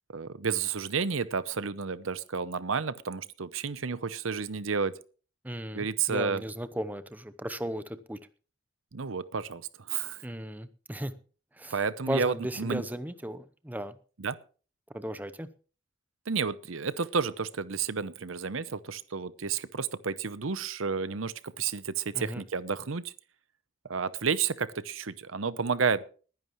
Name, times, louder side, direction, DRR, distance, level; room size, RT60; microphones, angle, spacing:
voice 1, 0.1-5.0 5.7-6.4 8.9-10.2 11.7-12.8 14.2-14.4 16.3-23.1 23.8-26.0, right 5 dB, 80° right, 16 dB, 0.8 m, -31 dB
voice 2, 5.4-8.2 10.2-11.1 11.5-11.8 12.1-13.9 14.9-15.5 22.1-22.4, equal, 10° right, 12 dB, 0.7 m, -35 dB
21.0 x 10.5 x 3.1 m, 0.38 s
head